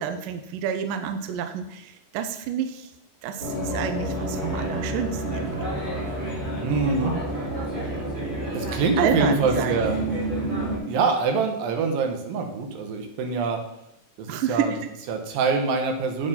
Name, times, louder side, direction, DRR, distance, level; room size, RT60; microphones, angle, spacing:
voice 1, 0.0-2.9 3.2-5.8 9.0-9.9 14.3-14.9, right 8 dB, 85° right, 8 dB, 1.9 m, -29 dB
sound 1, 3.4-10.8, right 1 dB, 20° right, 4.8 m, -29 dB
voice 2, 6.6-7.2 8.5-10.1 10.9-13.6 14.2-14.7 15.1-16.3, right 4 dB, 70° right, 4 dB, 2.7 m, -24 dB
8.3 x 7.2 x 5.6 m, 0.82 s
omnidirectional pair, 4.6 m